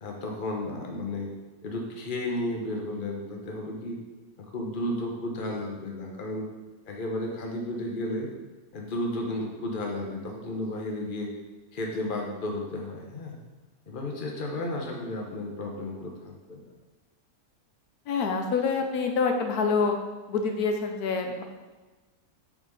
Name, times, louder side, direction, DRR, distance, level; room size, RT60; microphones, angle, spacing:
voice 1, 0.0-1.3 1.6-4.0 4.4-6.5 6.9-8.3 8.7-11.3 11.7-13.4 13.9-16.7, left 1 dB, 40° left, 0 dB, 1.1 m, -33 dB
voice 2, 18.1-19.9 20.3-21.4, left 5 dB, 85° left, 4 dB, 1.2 m, -26 dB
5.9 x 4.4 x 5.3 m, 1.2 s
omnidirectional pair, 1.6 m